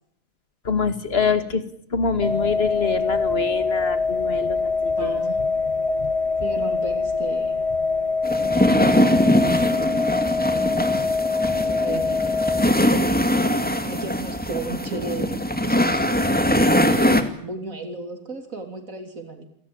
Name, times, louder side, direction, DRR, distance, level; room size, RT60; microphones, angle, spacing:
voice 1, 0.6-1.6 1.9-5.2 17.0-17.2, left 5 dB, 50° left, 10 dB, 2.5 m, -25 dB
sound 1, 2.2-12.7, left 4 dB, 25° left, 1.1 m, -24 dB
voice 2, 5.0-5.4 6.4-7.6 8.3-10.1 11.7-12.2 12.5-13.2 13.8-16.1 16.6-19.5, right 3 dB, 85° right, 6 dB, 3.7 m, -34 dB
sound 2, 8.2-17.2, equal, 5° left, 2.3 m, -21 dB
28.5 x 18.5 x 8.8 m, 0.71 s
omnidirectional pair, 1.4 m